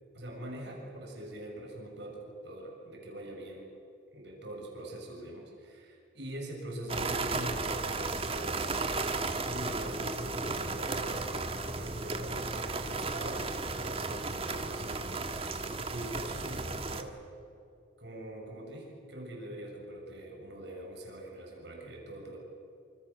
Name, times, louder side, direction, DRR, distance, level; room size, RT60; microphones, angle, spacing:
voice 1, 0.1-3.7 4.1-11.3 11.8-17.2 18.0-22.4, right 1 dB, 65° right, 0 dB, 6.8 m, -43 dB
sound 1, 6.9-17.0, right 3 dB, 30° right, 1.6 m, -34 dB
27.0 x 26.5 x 7.2 m, 2.5 s
head